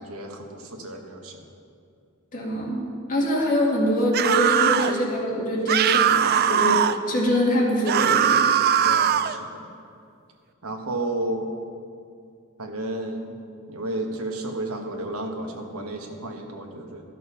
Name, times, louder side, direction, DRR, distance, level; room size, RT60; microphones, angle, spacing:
voice 1, 0.0-1.4 8.8-9.7 10.6-11.5 12.6-13.4 13.7-17.0, right 1 dB, 85° right, 3 dB, 1.2 m, -32 dB
voice 2, 2.3-8.4, equal, 40° left, -3 dB, 2.0 m, -24 dB
sound 1, 4.1-4.9 5.7-7.0 7.9-9.4, right 9 dB, 45° right, 0.3 m, -20 dB
13.0 x 6.6 x 5.7 m, 2.4 s
head